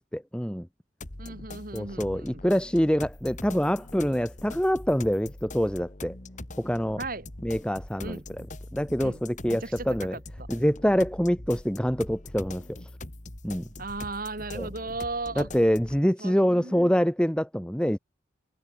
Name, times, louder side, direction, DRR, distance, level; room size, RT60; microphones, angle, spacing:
voice 1, 0.1-0.7 1.7-6.2 6.6-7.0 7.4-8.2 8.7-10.2 10.5-12.8 13.4-13.7 14.5-14.7 15.4-18.0, equal, 5° left, 1.8 m, -25 dB
sound 1, 1.0-16.0, left 2 dB, 40° left, 2.0 m, -42 dB
voice 2, 1.2-2.4 7.0-7.3 8.0-8.3 9.0-9.2 9.5-10.2 13.8-15.5 16.2-16.9, right 3 dB, 45° right, 3.2 m, -36 dB
head